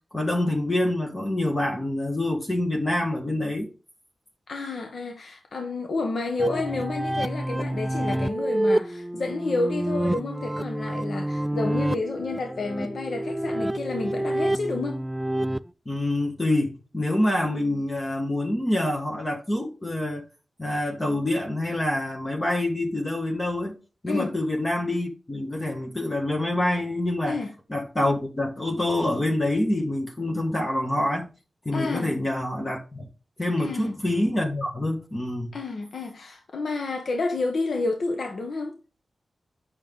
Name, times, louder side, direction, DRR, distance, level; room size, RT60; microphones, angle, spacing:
voice 1, 0.1-3.7 15.8-20.2 20.6-23.8 24.0-27.4 27.7-31.3 31.6-33.1 33.4-35.5, left 1 dB, 25° left, 1.5 m, -26 dB
voice 2, 4.5-15.0 24.1-24.4 27.3-27.5 31.7-32.1 33.6-34.0 35.5-38.8, left 3 dB, 70° left, 1.1 m, -30 dB
sound 1, 6.4-15.6, right 1 dB, 10° right, 0.3 m, -28 dB
8.9 x 6.4 x 3.7 m
wide cardioid pair, 120°, 0 cm